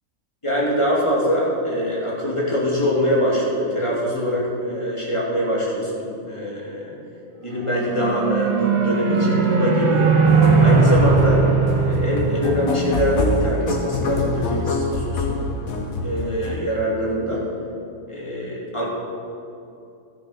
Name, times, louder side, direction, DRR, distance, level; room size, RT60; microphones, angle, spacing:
voice 1, 0.4-6.9 7.4-10.2 10.6-11.4 11.8-15.4 16.0-17.5 18.1-18.9, equal, 20° left, -5 dB, 2.4 m, -23 dB
sound 1, 7.6-13.1, right 4 dB, 30° right, 0.6 m, -19 dB
sound 2, 10.3-16.6, left 2 dB, 75° left, 1.5 m, -25 dB
12.5 x 7.1 x 5.5 m, 2.7 s
omnidirectional pair, 1.5 m